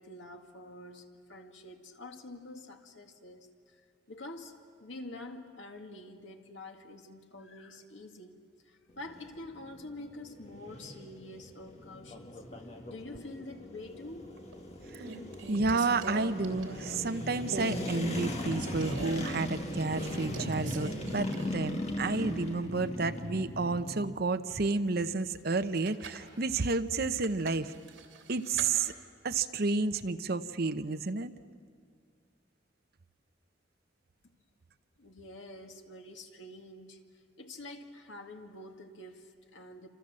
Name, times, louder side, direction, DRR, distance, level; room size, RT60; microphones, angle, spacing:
voice 1, 0.0-3.8 4.1-4.5 4.8-12.5 12.9-14.3 35.0-37.1 37.4-39.9, left 2 dB, 80° left, 4 dB, 2.2 m, -47 dB
sound 1, 8.9-24.1, left 1 dB, 35° left, 2.2 m, -39 dB
sound 2, 14.2-14.5 14.9-17.1 17.5-17.8 18.2-19.2 19.9-21.7 22.0-22.1 25.6-26.3 27.2-28.7, right 2 dB, 80° right, 3.1 m, -41 dB
voice 2, 15.5-27.7 28.3-28.9 29.2-31.3, right 3 dB, 55° right, 10 dB, 0.9 m, -31 dB
28.5 x 27.0 x 7.6 m, 2.1 s
head